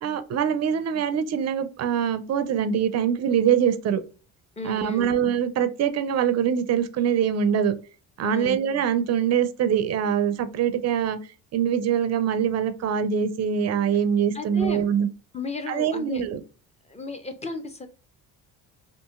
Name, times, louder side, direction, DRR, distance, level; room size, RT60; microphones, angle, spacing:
voice 1, 0.0-4.0 4.6-7.7 8.2-11.2 11.5-15.1 15.7-16.4, right 8 dB, 40° right, 0.4 m, -23 dB
voice 2, 4.6-5.1 8.2-8.6 14.3-14.9 15.3-16.2 16.9-17.9, left 2 dB, 15° left, 0.5 m, -33 dB
2.7 x 2.6 x 2.4 m
supercardioid pair, 80°, 42 cm